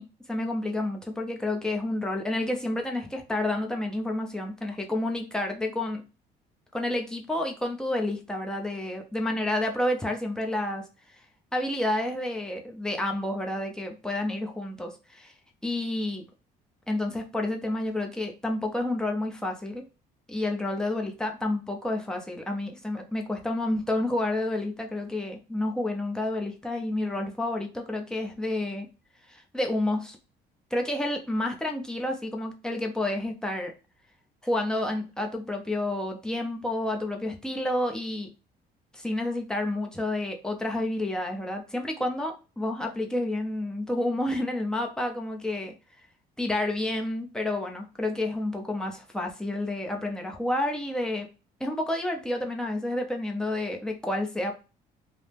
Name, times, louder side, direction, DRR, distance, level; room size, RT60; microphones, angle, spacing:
voice 1, 0.0-6.0 6.7-10.8 11.5-15.3 15.6-16.3 16.9-19.8 20.3-28.9 29.3-30.2 30.7-33.7 34.4-38.3 38.9-45.7 46.4-51.3 51.6-54.5, left 1 dB, 5° left, 2 dB, 0.5 m, -30 dB
2.6 x 2.0 x 3.3 m, 0.32 s
cardioid pair, 110°, 17 cm